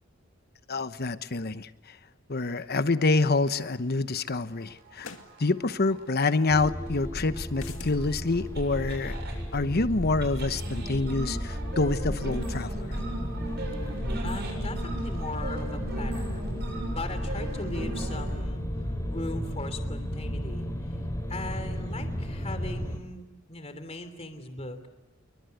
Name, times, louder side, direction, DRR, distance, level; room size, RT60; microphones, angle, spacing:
voice 1, 0.7-2.0 2.3-5.1 5.4-9.2 9.5-13.0, left 3 dB, 50° left, 12 dB, 1.0 m, -27 dB
sound 1, 4.9-9.4 10.2-18.4, right 2 dB, 55° right, 7.2 m, -39 dB
sound 2, 5.0-5.3 7.5-8.0, left 6 dB, 80° left, 2.3 m, -44 dB
sound 3, 6.5-23.0, equal, 15° left, 3.9 m, -33 dB
voice 2, 14.2-16.5 16.9-18.6 19.1-20.7 21.3-24.9, left 2 dB, 30° left, 9 dB, 3.1 m, -39 dB
28.5 x 23.5 x 8.2 m, 1.0 s
head